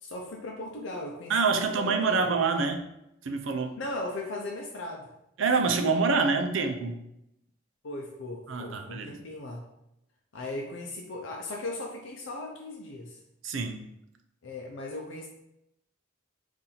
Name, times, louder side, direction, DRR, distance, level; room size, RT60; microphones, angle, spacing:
voice 1, 0.0-2.3 3.8-5.1 7.8-9.6 10.3-13.2 14.4-15.3, left 2 dB, 65° left, 0 dB, 0.5 m, -37 dB
voice 2, 1.3-2.8 3.2-3.8 5.4-7.0 8.5-9.1 13.4-13.9, right 4 dB, 75° right, 5 dB, 0.5 m, -26 dB
3.9 x 2.6 x 4.2 m, 0.83 s
head